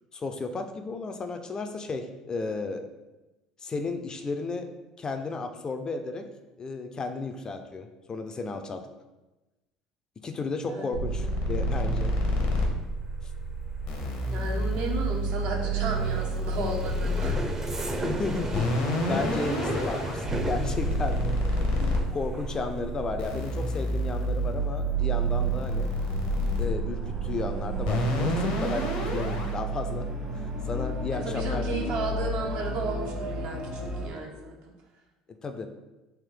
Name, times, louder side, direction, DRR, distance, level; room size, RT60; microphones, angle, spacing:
voice 1, 0.1-2.9 3.6-4.7 5.0-6.3 6.6-8.9 10.2-12.1 18.0-18.7 19.1-21.4 22.1-25.9 26.6-31.9 35.3-35.7, left 3 dB, 30° left, 7 dB, 0.4 m, -33 dB
voice 2, 10.6-11.3 14.3-17.4 21.6-21.9 31.2-34.7, right 3 dB, 65° right, 1 dB, 0.7 m, -34 dB
sound 1, 10.9-29.5, equal, 70° left, 0.7 m, -29 dB
sound 2, 12.1-26.7 27.0-27.5 27.8-28.1, right 1 dB, 20° right, 0.6 m, -36 dB
sound 3, 23.9-34.1, right 2 dB, 40° right, 1.0 m, -33 dB
3.4 x 2.6 x 3.7 m, 1.1 s
hypercardioid pair, 70°, 2 cm